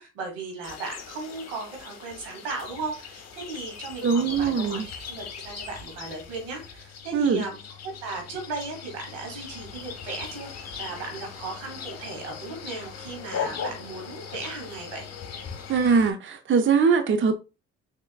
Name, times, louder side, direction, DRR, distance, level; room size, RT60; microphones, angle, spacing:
voice 1, 0.0-7.6 8.0-15.1, right 3 dB, 90° right, 2 dB, 1.4 m, -36 dB
sound 1, 0.6-16.1, left 7 dB, 55° left, 1.0 m, -39 dB
voice 2, 4.0-4.9 7.1-7.5 15.7-17.3, right 5 dB, 40° right, 8 dB, 0.6 m, -22 dB
3.9 x 3.5 x 2.2 m, 0.29 s
hypercardioid pair, 50°, 31 cm